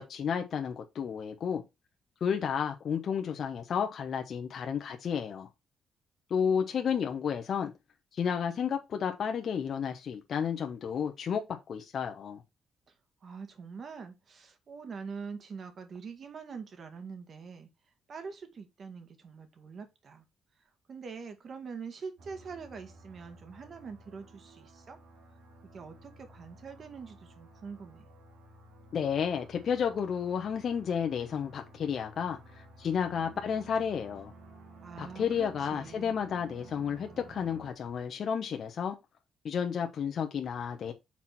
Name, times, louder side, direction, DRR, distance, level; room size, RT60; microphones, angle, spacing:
voice 1, 0.0-1.6 2.2-5.5 6.3-7.7 8.1-12.4 28.9-34.3 35.0-39.0 39.4-40.9, left 7 dB, 60° left, 1.0 m, -32 dB
voice 2, 13.2-17.7 18.1-20.2 20.9-25.0 25.7-28.0 34.8-36.2, right 5 dB, 50° right, 2.0 m, -44 dB
sound 1, 22.2-37.7, right 2 dB, 75° right, 2.8 m, -53 dB
5.9 x 4.3 x 5.9 m
cardioid pair, 90°, 0 cm